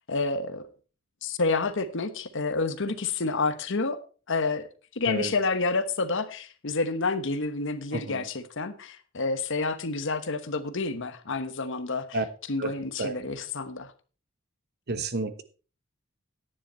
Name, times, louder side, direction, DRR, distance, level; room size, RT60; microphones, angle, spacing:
voice 1, 0.1-0.6 1.2-4.0 4.3-4.7 4.9-12.2 12.5-13.9, left 3 dB, 65° left, 1.1 m, -29 dB
voice 2, 7.9-8.3 12.1-12.2 12.6-13.2 14.9-15.4, right 3 dB, 50° right, 1.1 m, -31 dB
10.0 x 10.0 x 4.4 m
head